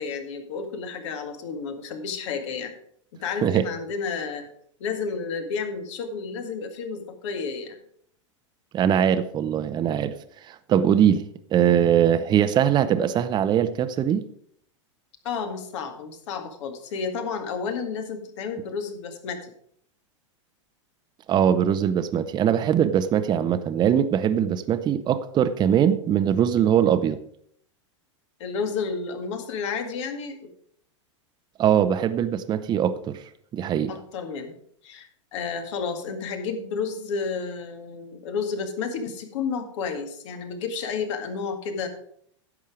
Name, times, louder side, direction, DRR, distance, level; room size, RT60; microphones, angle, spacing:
voice 1, 0.0-2.7 3.2-4.4 4.8-7.8 15.2-19.5 28.4-30.5 33.9-34.5 34.8-41.9, left 5 dB, 65° left, 6 dB, 2.0 m, -31 dB
voice 2, 8.7-10.1 10.5-11.3 11.5-14.2 21.3-27.2 31.6-33.2 33.5-33.9, right 9 dB, 25° right, 11 dB, 0.7 m, -21 dB
11.0 x 7.4 x 5.0 m, 0.66 s
hypercardioid pair, 120°, 16 cm